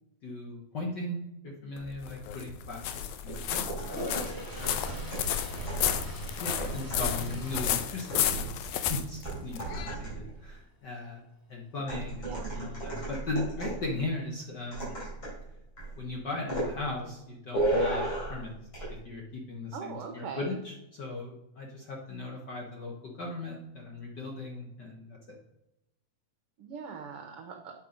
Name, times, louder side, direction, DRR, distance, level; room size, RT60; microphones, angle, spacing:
voice 1, 0.2-1.2 1.4-2.8 3.2-3.8 4.5-4.8 5.5-11.2 11.5-14.9 16.0-18.6 18.9-25.2, left 2 dB, 60° left, 0 dB, 1.1 m, -38 dB
sound 1, 1.8-10.0, left 10 dB, 80° left, 1.9 m, -33 dB
sound 2, 3.3-10.4 11.9-13.9 14.7-15.4 15.8-16.0 16.5-16.8 17.5-18.4 18.7-18.9, right 1 dB, 40° left, 4.2 m, -35 dB
Toilet flush, 3.8-9.0 9.4-9.7 14.2-14.3 14.6-15.3, left 1 dB, 15° left, 0.9 m, -43 dB
voice 2, 12.2-12.7 19.7-20.6 26.6-27.7, right 6 dB, 70° right, 4 dB, 1.4 m, -41 dB
8.3 x 5.5 x 5.1 m, 0.89 s
omnidirectional pair, 3.5 m